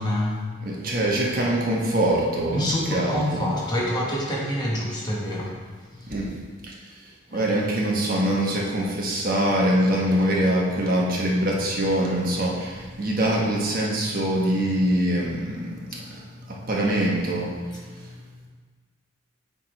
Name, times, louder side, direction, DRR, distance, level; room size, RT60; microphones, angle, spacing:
voice 1, 0.0-0.4 2.5-5.5 7.3-7.5, equal, 20° left, -4 dB, 1.0 m, -26 dB
voice 2, 0.6-2.6 2.9-3.5 6.0-6.3 6.6-6.8 7.3-18.2, right 1 dB, 45° right, -3 dB, 1.1 m, -24 dB
8.7 x 3.5 x 4.4 m, 1.4 s
head